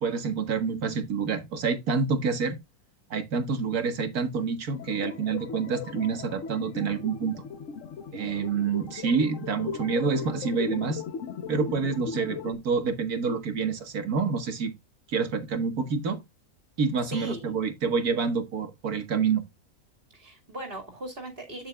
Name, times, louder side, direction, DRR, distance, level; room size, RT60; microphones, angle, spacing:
voice 1, 0.0-2.6 3.1-7.4 8.1-11.1 11.5-14.7 15.1-16.2 16.8-19.4, right 5 dB, 90° right, 2.1 m, -27 dB
sound 1, 4.7-12.6, left 6 dB, 60° left, 1.3 m, -37 dB
voice 2, 17.1-17.5 20.1-21.7, right 1 dB, 40° right, 2.6 m, -39 dB
9.4 x 8.0 x 2.4 m
omnidirectional pair, 1.5 m